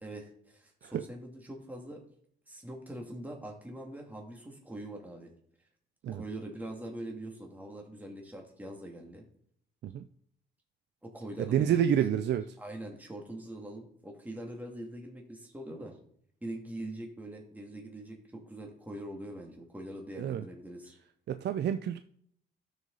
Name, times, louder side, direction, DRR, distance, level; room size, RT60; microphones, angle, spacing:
voice 1, 0.0-2.0 2.5-5.3 6.1-9.2 11.0-11.8 12.6-16.0 16.4-21.0, right 1 dB, 10° right, 0 dB, 2.4 m, -43 dB
voice 2, 11.4-12.5 20.2-20.4 21.3-22.0, right 9 dB, 60° right, 10 dB, 0.5 m, -29 dB
12.5 x 6.5 x 4.0 m, 0.65 s
cardioid pair, 90°, 20 cm